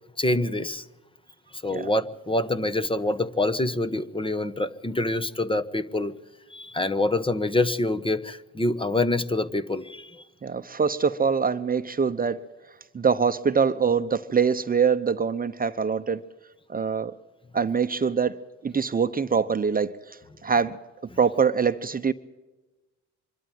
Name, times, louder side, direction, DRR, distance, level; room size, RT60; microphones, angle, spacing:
voice 1, 0.2-0.8 1.6-6.1 6.5-10.2, left 2 dB, 15° left, 1.1 m, -26 dB
voice 2, 10.4-12.4 12.9-16.2 16.7-17.1 17.5-20.8 21.2-22.1, right 6 dB, 30° right, 0.9 m, -24 dB
24.5 x 12.5 x 9.2 m
cardioid pair, 90°, 30 cm